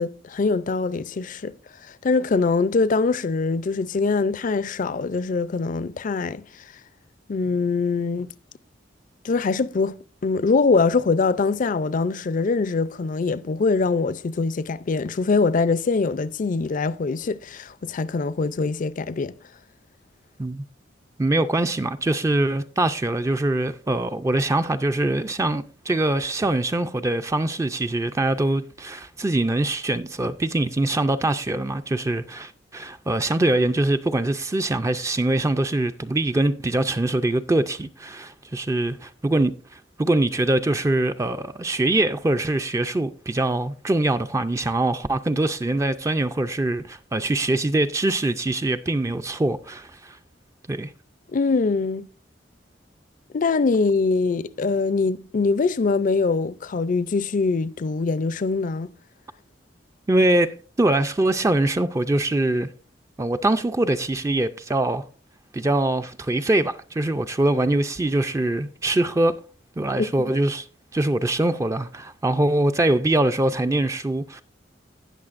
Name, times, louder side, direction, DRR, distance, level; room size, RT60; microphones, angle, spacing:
voice 1, 0.0-1.5 2.0-6.4 7.3-8.3 9.2-10.0 10.2-19.3 51.3-52.1 53.3-58.9 70.0-70.3, left 4 dB, 45° left, 0.4 m, -23 dB
voice 2, 21.2-50.2 50.7-50.9 60.1-62.7 63.2-65.0 65.5-69.4 69.8-70.7 70.9-74.4, right 2 dB, 15° right, 0.4 m, -23 dB
18.5 x 6.4 x 2.5 m
head